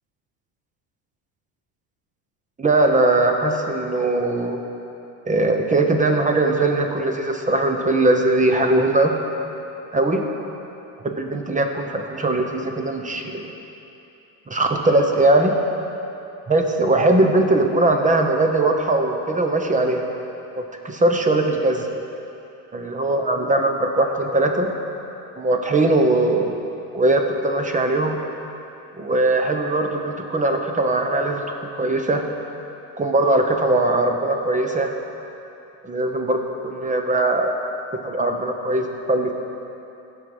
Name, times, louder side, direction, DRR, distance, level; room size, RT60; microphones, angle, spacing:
voice 1, 2.6-4.6 5.3-9.1 9.9-10.2 11.0-13.5 14.5-15.5 16.5-20.0 20.6-21.9 22.7-24.7 25.4-26.6 26.9-28.2 28.9-31.4 31.8-32.2 33.0-34.9 35.8-37.5 38.0-39.3, right 2 dB, 15° right, 4 dB, 1.0 m, -20 dB
16.0 x 5.5 x 4.9 m, 2.9 s
supercardioid pair, 105°, 46 cm